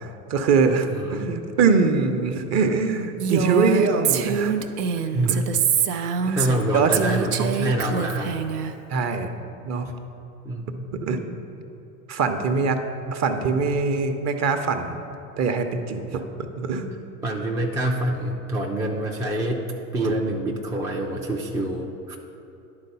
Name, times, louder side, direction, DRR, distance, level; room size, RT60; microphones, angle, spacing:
voice 1, 0.0-4.6 5.3-5.4 6.2-6.4 6.7-6.9 8.9-9.3 9.6-9.9 10.9-11.2 12.1-12.8 13.1-15.0 15.4-16.2 16.6-16.9 20.0-20.1, right 4 dB, 35° right, 7 dB, 0.7 m, -23 dB
voice 2, 0.7-1.4 5.1-5.5 6.3-8.3 10.4-10.9 17.2-19.7 19.9-22.2, right 1 dB, 10° right, 0 dB, 0.3 m, -26 dB
Female speech woman speaking, 3.2-6.6 6.9-8.7, right 7 dB, 85° right, 0.6 m, -24 dB
10.5 x 3.9 x 5.4 m, 2.8 s
hypercardioid pair, 90°, 45 cm